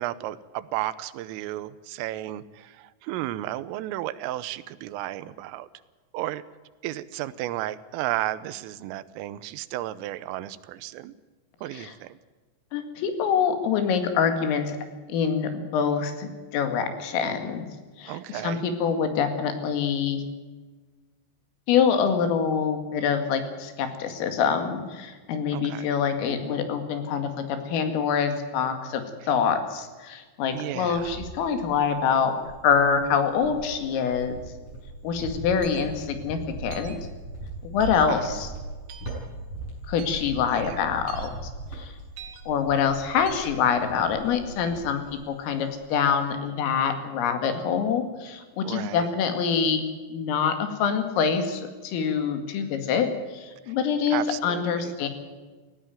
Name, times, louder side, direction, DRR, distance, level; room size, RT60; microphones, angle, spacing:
voice 1, 0.0-5.7 6.1-6.4 6.8-11.1 11.6-12.2 18.1-18.7 25.5-25.9 30.5-31.2 38.1-38.3 40.5-40.9 48.6-49.1 53.7-53.8 54.1-54.9, right 14 dB, 85° right, 16 dB, 3.4 m, -33 dB
voice 2, 12.7-14.8 15.1-17.6 18.0-20.2 21.7-32.3 32.6-34.4 35.0-37.0 37.6-38.5 39.9-41.3 41.7-41.9 42.5-55.1, left 6 dB, 80° left, 7 dB, 4.8 m, -25 dB
Cricket, 30.4-31.9 32.4-45.4 45.7-46.2, right 2 dB, 30° left, 8.0 m, -39 dB
sound 1, 35.6-35.9 36.7-37.0 37.8-38.0 38.9-39.1 40.0-40.2 41.1-41.3 42.2-42.4 43.3-43.5, right 8 dB, 65° right, 4.0 m, -44 dB
19.0 x 16.5 x 9.1 m, 1.3 s
omnidirectional pair, 5.8 m